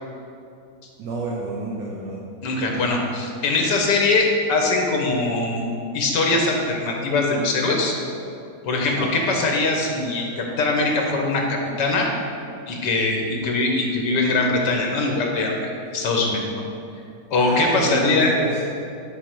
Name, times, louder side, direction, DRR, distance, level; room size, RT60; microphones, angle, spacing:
voice 1, 1.0-2.2 8.9-9.1 17.4-18.6, right 2 dB, 80° right, -4 dB, 1.5 m, -28 dB
voice 2, 2.4-5.7 5.9-7.9 8.6-12.1 12.7-15.6 15.9-16.4 17.3-18.3, left 3 dB, 80° left, 1 dB, 1.7 m, -22 dB
9.6 x 4.5 x 4.6 m, 2.6 s
omnidirectional pair, 1.8 m